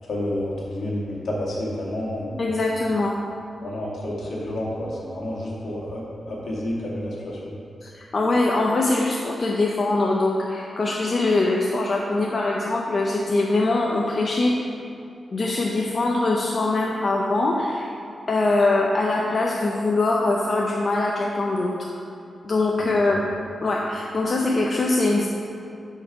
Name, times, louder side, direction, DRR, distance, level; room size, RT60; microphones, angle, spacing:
voice 1, 0.0-2.5 3.6-7.5 22.8-23.3, left 1 dB, 60° left, -5 dB, 2.2 m, -30 dB
voice 2, 2.4-3.2 7.8-14.6 15.3-17.9 18.3-21.9 22.4-23.3 23.6-25.3, left 2 dB, 35° left, -2 dB, 0.7 m, -22 dB
12.5 x 4.6 x 4.9 m, 2.6 s
wide cardioid pair, 155°, 0 cm